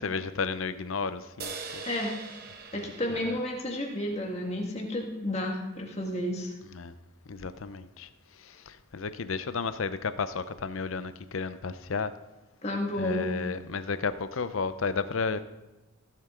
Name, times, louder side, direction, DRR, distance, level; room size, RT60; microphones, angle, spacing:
voice 1, 0.0-1.8 3.1-3.4 6.7-6.9 7.3-8.1 8.4-12.1 13.0-15.4, left 5 dB, 75° left, 13 dB, 0.6 m, -33 dB
sound 1, 1.4-4.9, right 4 dB, 45° right, 1.1 m, -43 dB
voice 2, 2.7-6.5 12.6-13.3, left 1 dB, 30° left, 1 dB, 1.7 m, -31 dB
16.0 x 7.5 x 3.8 m, 1.0 s
head